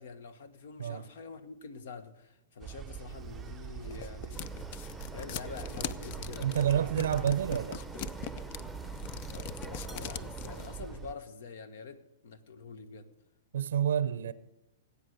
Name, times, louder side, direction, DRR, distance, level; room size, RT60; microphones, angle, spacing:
voice 1, 0.0-4.8 5.1-6.9 9.3-13.1, left 5 dB, 65° left, 1.4 m, -46 dB
sound 1, 2.6-11.1, right 10 dB, 20° right, 0.6 m, -44 dB
sound 2, 3.4-10.7, left 11 dB, 50° left, 0.5 m, -41 dB
sound 3, 4.3-11.2, right 1 dB, 5° left, 0.9 m, -46 dB
voice 2, 6.4-7.8 13.5-14.3, right 9 dB, 80° right, 0.7 m, -29 dB
18.5 x 8.4 x 6.6 m
hypercardioid pair, 140°, 0 cm